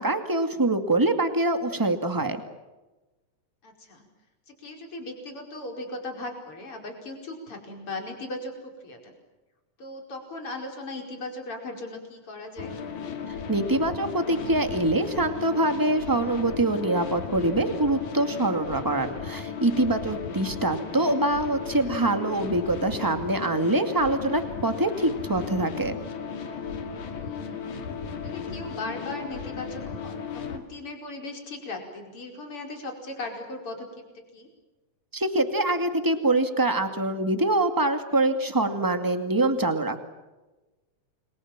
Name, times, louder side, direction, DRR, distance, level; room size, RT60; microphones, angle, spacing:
voice 1, 0.0-2.4 13.5-26.0 35.1-40.0, right 2 dB, 10° right, 7 dB, 1.7 m, -24 dB
voice 2, 3.6-4.0 4.5-9.1 9.8-12.7 20.7-20.8 27.1-27.6 28.2-33.9 34.3-34.5, left 2 dB, 45° left, 3 dB, 5.8 m, -38 dB
sound 1, 12.6-30.6, left 6 dB, 80° left, 3.8 m, -35 dB
29.5 x 23.0 x 7.5 m, 1.1 s
omnidirectional pair, 3.3 m